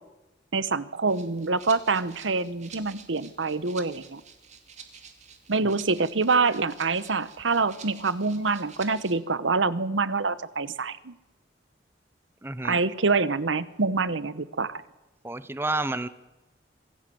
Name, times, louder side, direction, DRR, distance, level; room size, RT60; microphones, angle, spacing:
voice 1, 0.5-4.2 5.5-11.1 12.6-14.8, right 4 dB, 90° right, 16 dB, 1.0 m, -26 dB
Rattle (instrument), 1.1-9.2, right 6 dB, 40° right, 2.5 m, -49 dB
voice 2, 12.4-12.8 15.2-16.1, right 2 dB, 15° right, 14 dB, 0.7 m, -30 dB
25.5 x 17.0 x 7.8 m, 1.1 s
head